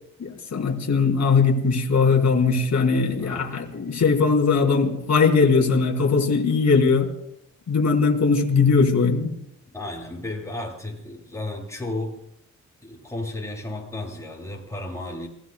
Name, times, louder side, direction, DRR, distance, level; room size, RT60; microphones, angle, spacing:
voice 1, 0.2-7.1 7.7-9.3, left 4 dB, 60° left, 0 dB, 3.1 m, -20 dB
voice 2, 3.2-3.7 9.7-12.2 12.8-15.3, left 2 dB, 10° left, -2 dB, 7.9 m, -33 dB
28.5 x 18.5 x 2.3 m, 0.77 s
cardioid pair, 50°, 32 cm